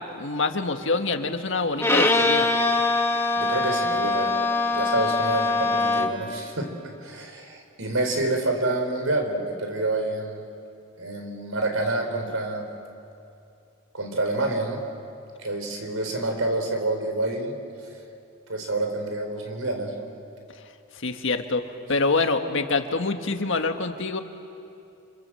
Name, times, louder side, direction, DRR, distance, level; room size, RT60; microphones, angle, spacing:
voice 1, 0.0-2.5 20.6-20.7 20.9-21.6 21.9-24.2, left 3 dB, 65° left, 6 dB, 1.7 m, -26 dB
Bowed string instrument, 1.8-6.3, left 3 dB, 10° left, 1.7 m, -23 dB
voice 2, 3.4-6.7 7.0-10.4 11.0-12.7 13.9-14.8 15.4-17.6 18.5-20.1, right 2 dB, 85° right, 4 dB, 4.3 m, -28 dB
28.5 x 27.0 x 7.7 m, 2.6 s
head